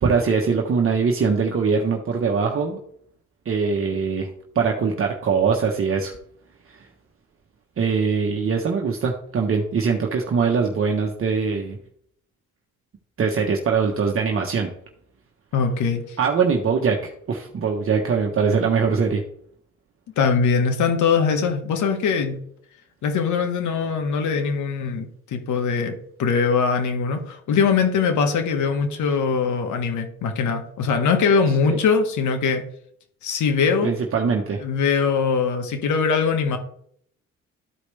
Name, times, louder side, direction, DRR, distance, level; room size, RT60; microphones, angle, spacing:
voice 1, 0.0-2.8 3.4-4.3 4.5-6.2 6.7-6.8 7.8-11.8 13.2-14.7 16.2-19.2 31.7-31.8 33.8-34.6, right 5 dB, 45° right, 2 dB, 1.2 m, -22 dB
voice 2, 15.5-16.2 20.2-22.4 23.0-25.9 26.2-32.6 33.2-33.9 34.6-36.6, left 5 dB, 80° left, 5 dB, 1.6 m, -21 dB
13.0 x 5.0 x 3.3 m, 0.65 s
cardioid pair, 90°, 30 cm